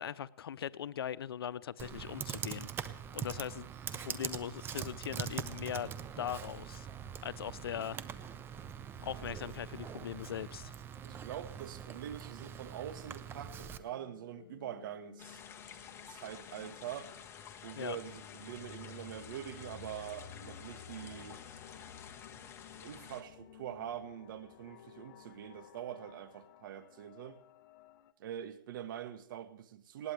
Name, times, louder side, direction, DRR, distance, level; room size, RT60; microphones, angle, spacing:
voice 1, 0.0-2.7 3.1-6.9 7.2-8.0 9.0-10.7 17.8-18.0, left 9 dB, 85° left, 0.6 m, -40 dB
Computer keyboard, 1.8-13.8, right 8 dB, 20° right, 0.7 m, -43 dB
voice 2, 11.0-15.4 16.1-17.1 17.6-21.4 22.4-22.5 22.7-27.4 28.2-30.1, right 10 dB, 60° right, 1.6 m, -44 dB
sound 1, 12.1-28.1, left 9 dB, 45° left, 1.1 m, -55 dB
sound 2, 15.2-23.2, left 8 dB, 20° left, 1.5 m, -51 dB
19.5 x 18.0 x 3.4 m
hypercardioid pair, 145°, 12 cm